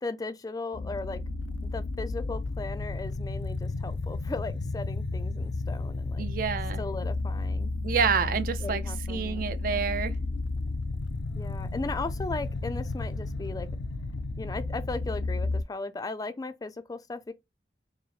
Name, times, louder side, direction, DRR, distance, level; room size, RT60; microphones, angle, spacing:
voice 1, 0.0-1.2 1.6-6.3 6.8-7.7 8.6-9.5 11.3-13.7 14.4-17.3, left 3 dB, 20° left, 0.3 m, -37 dB
sound 1, 0.7-15.6, left 2 dB, 90° left, 0.5 m, -32 dB
voice 2, 6.2-6.8 7.8-8.8 9.1-10.2, right 6 dB, 50° right, 0.4 m, -28 dB
4.6 x 2.0 x 3.1 m
head